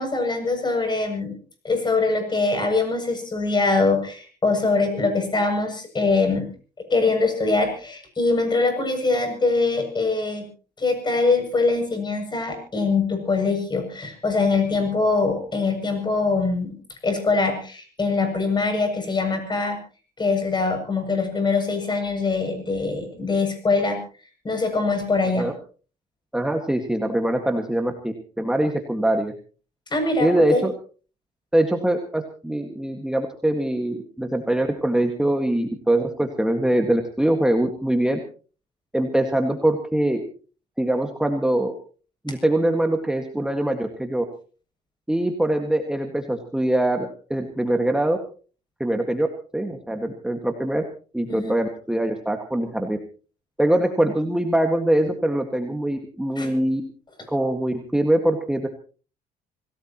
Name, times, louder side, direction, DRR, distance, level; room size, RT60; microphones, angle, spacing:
voice 1, 0.0-1.3 1.6-6.5 6.9-10.5 10.8-16.7 17.0-19.8 20.2-24.0 24.4-25.5 29.9-30.6 51.3-51.5 56.4-56.5, left 3 dB, 25° left, 5 dB, 7.2 m, -23 dB
voice 2, 26.3-29.3 30.2-30.7 31.5-38.2 38.9-40.3 40.8-41.7 42.2-44.2 45.1-48.2 48.8-49.3 49.5-50.8 51.1-53.0 53.6-56.8 57.3-58.7, right 1 dB, 5° right, 4 dB, 1.8 m, -23 dB
26.0 x 17.5 x 3.0 m, 0.39 s
cardioid pair, 110°, 17 cm